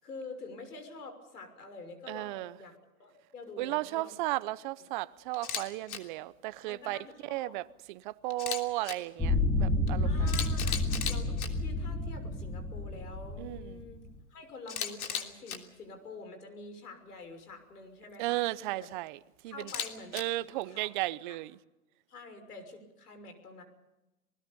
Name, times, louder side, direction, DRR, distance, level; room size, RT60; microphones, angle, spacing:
voice 1, 0.0-4.2 6.7-7.5 10.0-14.0 14.3-18.9 19.5-20.2 20.6-20.9 22.1-23.6, left 3 dB, 90° left, 6.2 m, -47 dB
voice 2, 2.1-2.5 3.6-10.3 13.4-13.8 18.2-19.7 20.1-21.6, right 18 dB, 35° right, 0.7 m, -35 dB
Camera, 5.3-5.6 5.9-6.0 8.3-8.9 9.9-10.0 10.3-11.5 14.7-15.6 19.6-20.2, left 8 dB, 70° left, 3.3 m, -35 dB
sound 1, 9.2-14.1, left 2 dB, 5° left, 2.3 m, -30 dB
28.0 x 20.0 x 5.4 m
hypercardioid pair, 145°, 45 cm